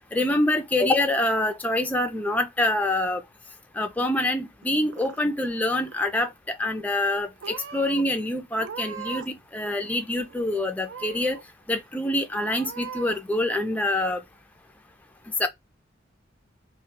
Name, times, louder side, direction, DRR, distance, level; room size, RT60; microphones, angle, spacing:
voice 1, 0.1-3.2 3.8-11.4 11.7-14.2 15.4-15.5, left 1 dB, 10° left, 0.3 m, -25 dB
Purr / Meow, 4.6-5.5 5.8-6.3 7.0-7.2 7.4-8.0 8.5-9.4 9.7-10.4 10.8-11.4 11.9-12.0 12.4-13.2, right 7 dB, 75° right, 0.4 m, -40 dB
2.2 x 2.1 x 3.8 m
head